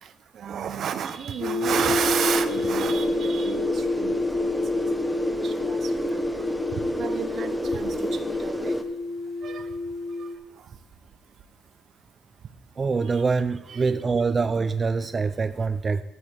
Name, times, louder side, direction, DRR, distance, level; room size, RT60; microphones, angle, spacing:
voice 1, 0.3-4.5 4.7-4.8 5.4-6.2 7.0-7.9 8.4-8.7 9.4-9.7 13.7-13.9, right 8 dB, 65° right, 12 dB, 0.7 m, -31 dB
sound 1, 1.4-10.4, left 2 dB, 50° left, 1.2 m, -30 dB
sound 2, 1.7-8.8, left 1 dB, 5° left, 1.0 m, -29 dB
voice 2, 12.8-16.0, right 4 dB, 35° right, 11 dB, 0.4 m, -24 dB
13.5 x 8.4 x 3.5 m, 1.0 s
cardioid pair, 90°, 0 cm